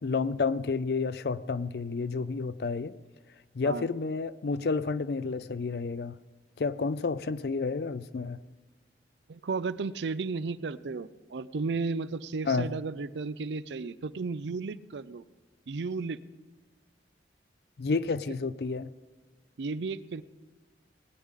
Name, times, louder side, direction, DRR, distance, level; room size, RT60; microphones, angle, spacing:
voice 1, 0.0-2.9 3.5-6.2 6.6-8.4 12.5-12.7 17.8-18.9, left 4 dB, 60° left, 15 dB, 0.4 m, -30 dB
voice 2, 9.3-15.2 15.7-16.2 19.6-20.2, right 4 dB, 80° right, 16 dB, 0.5 m, -34 dB
19.5 x 9.7 x 3.7 m, 1.3 s
head